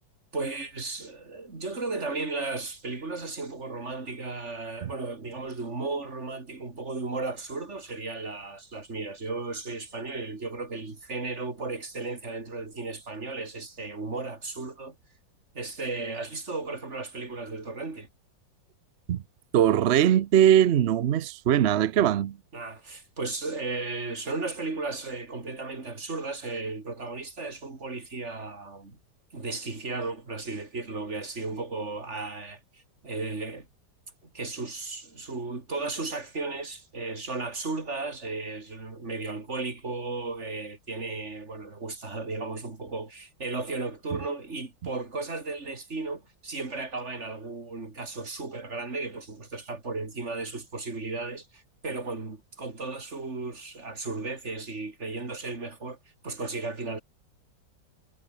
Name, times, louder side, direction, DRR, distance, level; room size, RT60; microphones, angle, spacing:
voice 1, 0.3-15.0 15.5-18.1 22.5-29.0 29.3-33.7 34.3-56.0 56.2-57.0, right 3 dB, 35° right, 3.5 m, -35 dB
voice 2, 19.5-22.4, right 10 dB, 75° right, 0.6 m, -21 dB
omnidirectional pair, 2.0 m